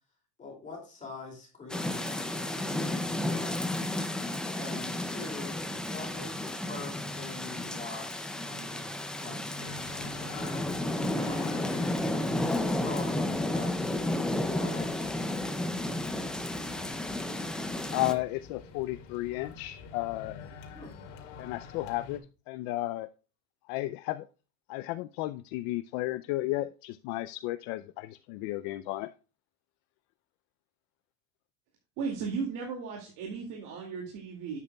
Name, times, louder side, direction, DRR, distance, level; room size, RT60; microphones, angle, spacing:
voice 1, 0.4-3.6 4.6-5.6 5.9-15.6 20.7-20.9, left 3 dB, 20° left, 0 dB, 2.6 m, -45 dB
sound 1, 1.7-18.1, left 1 dB, ahead, 0.3 m, -32 dB
sound 2, 9.6-22.2, left 5 dB, 90° left, 2.2 m, -48 dB
voice 2, 17.9-20.5 21.4-23.1 23.7-24.3 24.7-29.1, left 17 dB, 60° left, 13 dB, 0.5 m, -33 dB
voice 3, 32.0-34.6, right 5 dB, 55° right, 0 dB, 2.3 m, -35 dB
10.5 x 8.3 x 2.3 m, 0.34 s
cardioid pair, 165°, 37 cm